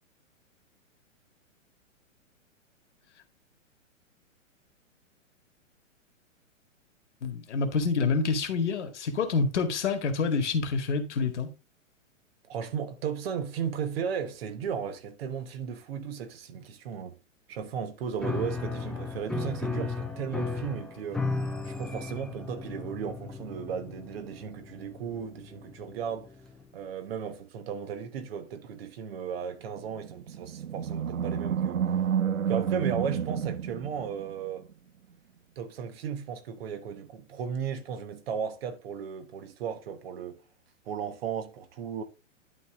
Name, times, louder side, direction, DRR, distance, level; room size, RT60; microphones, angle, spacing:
voice 1, 7.2-11.5, left 4 dB, 60° left, 2.0 m, -27 dB
voice 2, 12.5-17.2 17.5-21.3 21.6-26.3 26.7-31.8 32.5-34.6 35.6-40.4 40.8-42.0, right 7 dB, 50° right, 1.3 m, -35 dB
Piano, 18.2-26.7, left 3 dB, ahead, 0.6 m, -36 dB
Animal, 30.0-34.5, right 8 dB, 80° right, 0.7 m, -30 dB
11.0 x 4.1 x 3.6 m
figure-of-eight pair, 115°, 39 cm